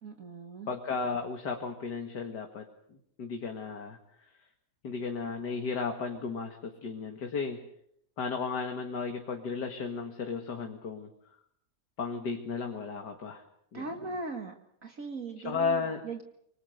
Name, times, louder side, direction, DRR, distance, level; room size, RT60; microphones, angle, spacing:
voice 1, 0.0-0.7 13.7-14.5 14.8-15.8 16.0-16.2, right 3 dB, 55° right, 4 dB, 2.2 m, -39 dB
voice 2, 0.7-2.6 2.9-4.0 4.8-7.6 8.2-11.1 12.0-13.4 13.7-14.2 15.4-16.0, left 5 dB, 85° left, 4 dB, 2.5 m, -34 dB
26.5 x 24.5 x 6.6 m, 0.70 s
omnidirectional pair, 1.8 m